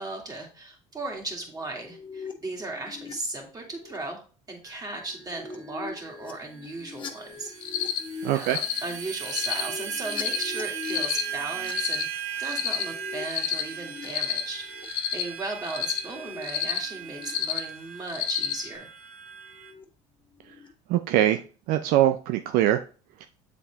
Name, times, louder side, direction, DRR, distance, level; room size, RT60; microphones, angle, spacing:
voice 1, 0.0-4.2 4.5-7.5 7.8-7.9 8.3-12.1 12.4-18.9, right 2 dB, 25° right, 1 dB, 2.2 m, -36 dB
sound 1, 1.6-3.1 3.5-4.0 5.0-11.7 12.6-14.1 14.4-14.8 15.9-16.5 16.7-17.3 18.0-18.2 19.5-19.8 20.3-20.7, left 4 dB, 30° left, 1.0 m, -42 dB
sound 2, 4.6-19.7, right 8 dB, 85° right, 0.9 m, -38 dB
Cricket, 7.6-8.0 8.4-8.8 9.2-9.6 10.1-10.4 10.8-11.2 11.6-12.0 12.4-12.8 13.2-13.6 14.0-14.4 14.8-15.2 15.6-16.0 16.4-16.8 17.2-17.6 18.1-18.5, left 12 dB, 70° left, 0.9 m, -29 dB
voice 2, 8.2-8.6 20.9-21.4 21.7-22.8 23.2-23.3, right 13 dB, 65° right, 9 dB, 0.4 m, -22 dB
7.5 x 4.2 x 3.4 m, 0.37 s
supercardioid pair, 80°, 16 cm